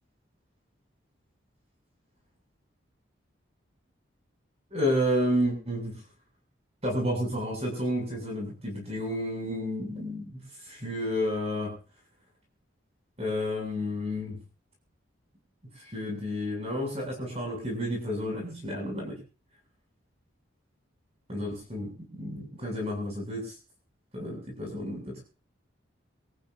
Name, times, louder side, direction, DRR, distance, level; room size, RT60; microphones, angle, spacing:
voice 1, 4.7-5.9 6.8-11.7 13.2-14.4 15.8-19.2 21.3-23.5 24.1-25.2, equal, 30° right, 0 dB, 7.7 m, -31 dB
27.0 x 14.5 x 2.8 m, 0.36 s
head